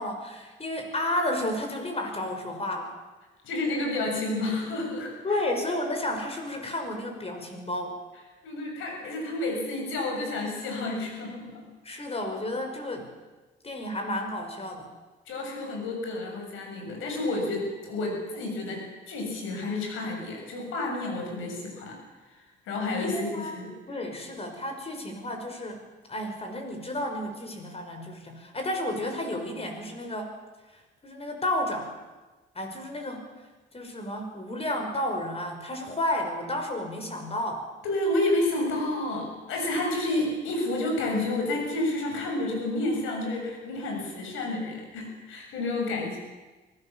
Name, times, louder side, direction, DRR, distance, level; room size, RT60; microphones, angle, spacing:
voice 1, 0.0-2.9 5.2-8.0 11.8-13.1 13.6-14.9 23.0-23.6 23.9-25.8 26.1-30.3 30.7-31.9 32.5-33.3 33.7-37.7, left 1 dB, 30° left, 4 dB, 5.6 m, -32 dB
voice 2, 3.4-5.1 8.4-11.7 11.9-12.0 15.3-22.0 22.3-22.4 22.7-23.7 37.8-46.2, left 2 dB, 90° left, 1 dB, 6.9 m, -30 dB
24.5 x 16.5 x 7.2 m, 1.2 s
cardioid pair, 90°, 20 cm